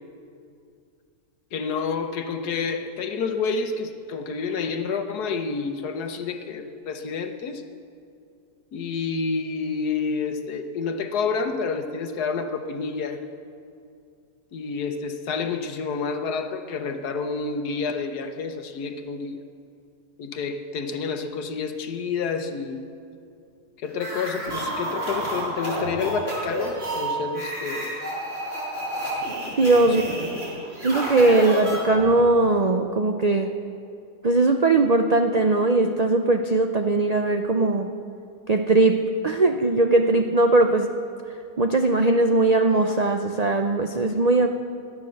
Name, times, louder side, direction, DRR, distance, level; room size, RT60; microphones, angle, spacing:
voice 1, 1.5-7.6 8.7-13.2 14.5-19.4 20.2-22.8 23.8-28.0 29.9-30.0, left 5 dB, 80° left, 8 dB, 1.5 m, -29 dB
sound 1, 23.9-32.2, right 1 dB, 40° right, 5.3 m, -30 dB
voice 2, 29.6-30.0 30.8-33.5 34.2-37.9 38.5-40.9 41.6-44.5, right 2 dB, 75° right, 5 dB, 0.3 m, -20 dB
17.5 x 12.0 x 6.4 m, 2.4 s
omnidirectional pair, 1.7 m